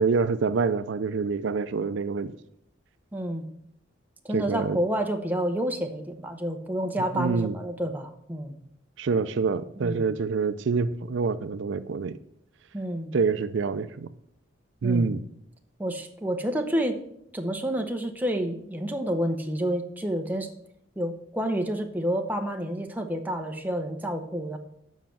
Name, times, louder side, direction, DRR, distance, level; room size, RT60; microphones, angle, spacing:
voice 1, 0.0-2.3 4.3-4.8 7.1-7.5 9.0-12.2 13.1-14.1 14.8-15.2, right 4 dB, 70° right, 0.4 m, -26 dB
voice 2, 3.1-3.5 4.2-8.6 9.8-10.1 12.7-13.1 14.8-15.1 15.8-17.0 17.3-20.5 21.0-24.6, equal, 10° right, 0.7 m, -29 dB
7.3 x 5.7 x 7.4 m
head